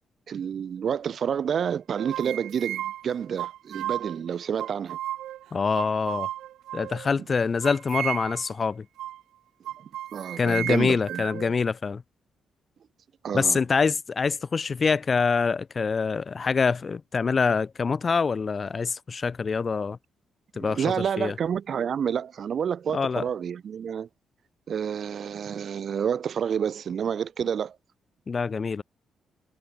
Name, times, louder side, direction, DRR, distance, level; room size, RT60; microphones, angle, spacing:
voice 1, 0.3-5.0 10.1-11.4 13.2-13.6 20.6-24.1 24.7-27.8, right 8 dB, 60° right, 1.1 m, -29 dB
sound 1, 1.7-4.2 4.6-5.4 5.7-7.1 7.6-8.5 9.0-9.2 9.6-11.5, right 13 dB, 85° right, 2.1 m, -34 dB
voice 2, 5.5-6.3 6.7-8.9 10.4-12.0 13.3-20.0 20.6-21.3 22.9-23.2 28.3-28.8, left 5 dB, 40° left, 1.7 m, -25 dB
cardioid pair, 70°, 0 cm